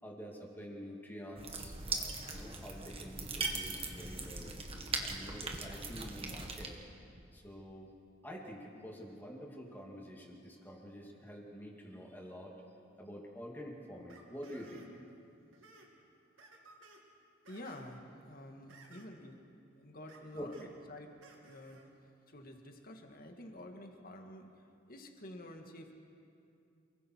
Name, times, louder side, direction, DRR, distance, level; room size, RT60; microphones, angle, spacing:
voice 1, 0.0-1.7 2.3-4.5 5.0-6.8 7.3-7.9 8.2-12.5 13.0-14.9 20.3-20.5, equal, 10° left, -2 dB, 2.6 m, -47 dB
sound 1, 1.4-6.7, right 3 dB, 30° right, 1.8 m, -40 dB
sound 2, 14.1-15.1 15.4-15.9 16.4-17.0 17.4-18.0 18.7-19.2 20.1-20.7 21.2-21.9, right 3 dB, 75° right, 2.7 m, -58 dB
voice 2, 17.5-19.4 19.7-21.1 21.4-21.8 22.3-24.5 24.9-25.9, left 1 dB, 45° left, 3 dB, 2.0 m, -49 dB
28.5 x 21.0 x 4.7 m, 2.5 s
head